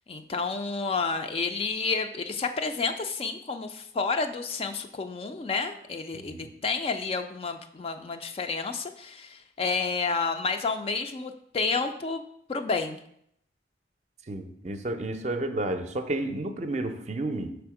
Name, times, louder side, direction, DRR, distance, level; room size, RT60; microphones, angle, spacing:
voice 1, 0.1-12.2 12.5-13.0, left 4 dB, 30° left, 7 dB, 0.3 m, -30 dB
voice 2, 6.1-6.5 14.3-17.6, right 2 dB, 40° right, 7 dB, 0.5 m, -31 dB
5.7 x 3.4 x 4.7 m, 0.72 s
head